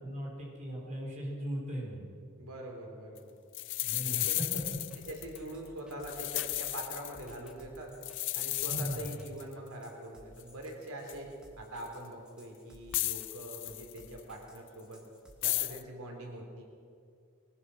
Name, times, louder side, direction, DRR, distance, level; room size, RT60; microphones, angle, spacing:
voice 1, 0.0-2.1 3.8-4.4 8.7-9.0, right 1 dB, 35° right, -3 dB, 5.4 m, -38 dB
voice 2, 2.4-3.3 4.0-4.7 5.1-7.9 8.4-15.0 15.4-16.7, right 1 dB, 90° right, 1 dB, 3.9 m, -44 dB
sound 1, 3.2-3.3 3.5-5.5 5.9-7.5 8.0-9.5 10.4-10.5 11.1-11.2 11.9-12.0 12.9-14.2 15.4-15.8, left 17 dB, 55° left, 0.7 m, -34 dB
sound 2, 4.3-15.7, equal, 5° right, 2.4 m, -58 dB
22.5 x 20.0 x 6.3 m, 2.4 s
head